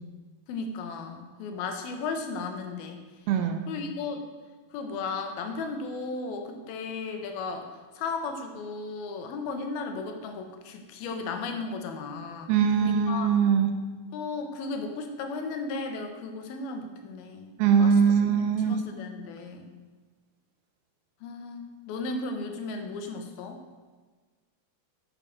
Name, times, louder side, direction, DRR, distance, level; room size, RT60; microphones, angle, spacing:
voice 1, 0.5-3.0 3.7-4.3 4.7-7.7 8.0-13.3 14.1-17.5 17.8-17.9 18.3-19.7 21.2-23.6, left 4 dB, 80° left, 5 dB, 2.9 m, -35 dB
voice 2, 3.3-3.7 12.5-13.7 17.6-18.8, right 7 dB, 90° right, 6 dB, 2.8 m, -22 dB
8.7 x 7.3 x 6.7 m, 1.4 s
omnidirectional pair, 4.3 m